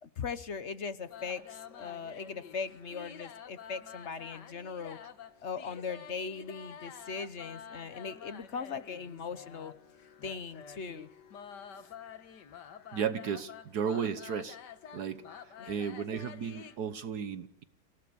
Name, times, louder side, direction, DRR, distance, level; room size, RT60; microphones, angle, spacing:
voice 1, 0.0-5.0 5.4-9.7 10.2-11.1 11.8-11.9 15.6-15.7, left 5 dB, 50° left, 13 dB, 1.1 m, -39 dB
sound 1, 1.1-16.8, left 7 dB, 85° left, 1.9 m, -49 dB
voice 2, 12.9-14.6 14.9-15.2 15.7-17.6, right 7 dB, 70° right, 11 dB, 1.6 m, -34 dB
27.5 x 17.0 x 6.9 m, 0.77 s
omnidirectional pair, 1.8 m